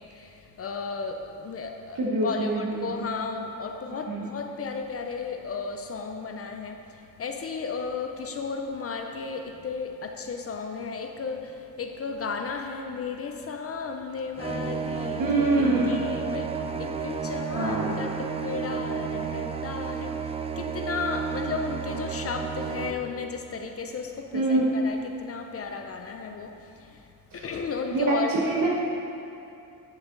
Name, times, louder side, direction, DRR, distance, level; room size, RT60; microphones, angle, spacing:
voice 1, 0.0-28.3, left 5 dB, 40° left, 5 dB, 0.5 m, -34 dB
voice 2, 2.0-2.9 4.1-4.3 15.2-15.9 17.6-17.9 24.3-24.7 27.3-27.5 27.9-28.7, right 2 dB, 60° right, -3 dB, 1.2 m, -25 dB
sound 1, 14.4-22.9, right 6 dB, 20° right, 0.3 m, -32 dB
10.5 x 6.5 x 3.8 m, 2.7 s
cardioid pair, 130°, 37 cm